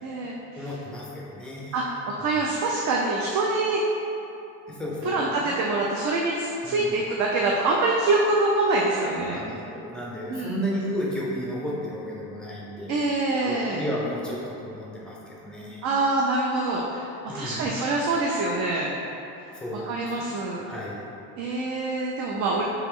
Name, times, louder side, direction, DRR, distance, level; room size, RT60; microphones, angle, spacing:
voice 1, 0.0-0.7 1.7-3.8 5.0-9.4 10.3-10.6 12.9-13.8 15.8-19.0 19.9-20.7 21.4-22.6, right 2 dB, 50° right, -2 dB, 0.4 m, -25 dB
voice 2, 0.6-1.7 2.3-2.4 4.7-5.5 6.6-7.0 9.2-13.0 13.4-15.9 17.3-17.7 19.5-20.2 20.6-21.0, equal, ahead, -5 dB, 0.6 m, -33 dB
3.3 x 2.9 x 3.6 m, 2.9 s
cardioid pair, 130°, 37 cm